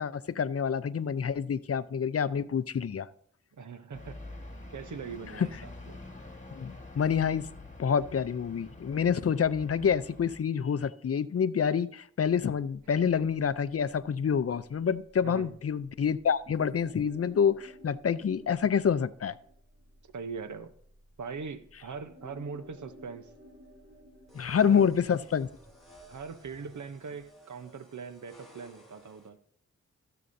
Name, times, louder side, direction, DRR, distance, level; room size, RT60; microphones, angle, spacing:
voice 1, 0.0-3.1 5.4-5.5 6.5-7.5 7.8-19.4 24.3-25.5, left 7 dB, 50° left, 15 dB, 0.5 m, -27 dB
voice 2, 3.5-4.2 4.7-6.0 15.2-15.5 20.1-20.7 21.2-23.3 24.6-25.0 26.1-29.4, right 5 dB, 70° right, 11 dB, 0.8 m, -41 dB
sound 1, 3.9-10.4, left 2 dB, 25° left, 1.5 m, -47 dB
sound 2, 14.9-26.3, equal, 40° right, 2.5 m, -56 dB
sound 3, 24.3-29.3, right 1 dB, ahead, 2.6 m, -56 dB
15.5 x 6.9 x 2.6 m, 0.63 s
cardioid pair, 45°, 31 cm